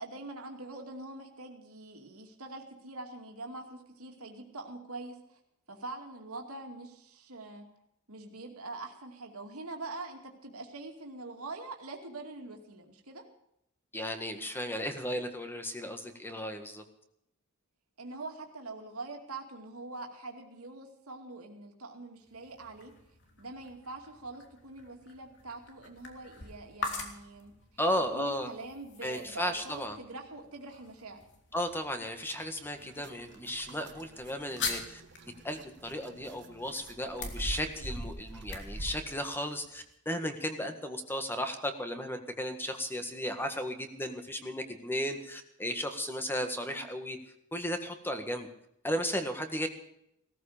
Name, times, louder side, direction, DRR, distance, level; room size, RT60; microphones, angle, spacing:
voice 1, 0.0-5.4 5.7-7.6 8.1-13.2 18.0-22.9 23.4-27.5 28.0-31.2 46.5-46.9, right 2 dB, 75° right, 2 dB, 2.4 m, -44 dB
voice 2, 13.9-16.8 27.8-28.5 29.0-30.0 31.5-35.0 35.4-47.2 47.5-48.5 48.8-49.7, equal, 10° left, 6 dB, 1.7 m, -35 dB
sound 1, 22.2-40.0, left 4 dB, 55° left, 3.0 m, -45 dB
sound 2, 32.8-39.0, right 1 dB, 55° right, 1.5 m, -43 dB
18.0 x 14.0 x 5.1 m, 0.78 s
head